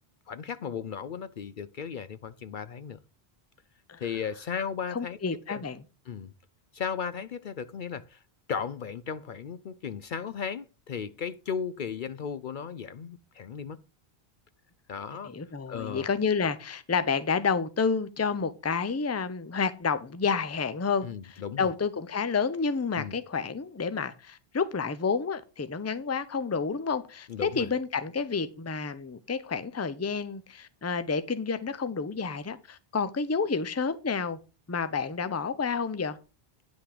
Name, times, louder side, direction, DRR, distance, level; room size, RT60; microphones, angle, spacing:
voice 1, 0.3-3.0 4.0-5.2 5.5-5.6 6.1-6.3 6.7-8.2 8.5-13.8 14.9-15.4 15.7-16.1 21.0-21.7 23.0-23.2 27.3-27.7, left 7 dB, 60° left, 0.7 m, -35 dB
voice 2, 4.9-5.8 15.2-34.4 34.7-36.2, left 5 dB, 20° left, 0.6 m, -30 dB
10.0 x 5.9 x 4.9 m
omnidirectional pair, 1.0 m